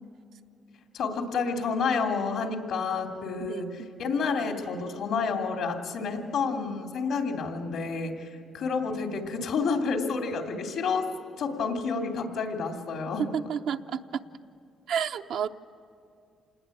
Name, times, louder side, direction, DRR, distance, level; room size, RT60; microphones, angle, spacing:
voice 1, 0.9-11.1 11.4-13.3, left 5 dB, 80° left, 3 dB, 2.9 m, -29 dB
voice 2, 3.4-3.9 13.3-14.0 14.9-15.5, right 8 dB, 75° right, 6 dB, 0.7 m, -31 dB
27.5 x 20.0 x 8.6 m, 2.4 s
cardioid pair, 90°, 0 cm